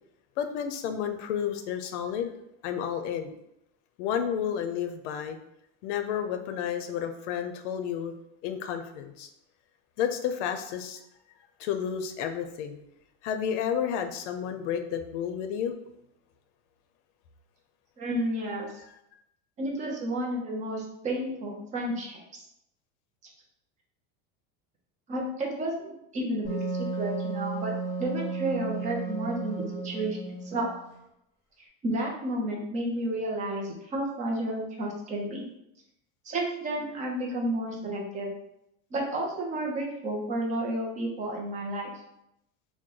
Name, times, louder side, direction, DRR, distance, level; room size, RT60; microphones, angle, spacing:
voice 1, 0.4-2.3 2.6-3.3 4.0-5.4 5.8-8.1 8.4-9.3 10.0-11.0 11.6-12.8 13.2-15.8, left 8 dB, 85° left, 7 dB, 0.6 m, -31 dB
voice 2, 18.0-18.7 19.6-22.4 25.1-27.7 28.0-30.7 31.8-35.5 36.2-38.3 38.9-41.9, right 1 dB, 20° right, -1 dB, 0.5 m, -31 dB
Wind instrument woodwind instrument, 26.4-30.9, right 4 dB, 35° left, 1.3 m, -34 dB
3.0 x 2.2 x 3.7 m, 0.81 s
cardioid pair, 165°, 35 cm